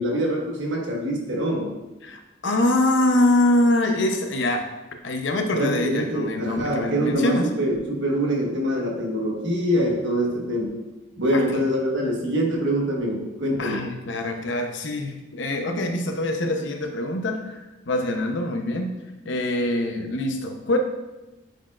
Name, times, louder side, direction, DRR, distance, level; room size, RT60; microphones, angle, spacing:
voice 1, 0.0-1.7 5.5-10.8 11.2-13.9, equal, 70° right, -1 dB, 1.3 m, -24 dB
voice 2, 2.0-4.7 5.0-7.5 11.3-11.6 13.6-18.9 19.2-20.8, left 1 dB, 75° left, 4 dB, 0.7 m, -24 dB
8.9 x 4.5 x 2.4 m, 1.0 s
head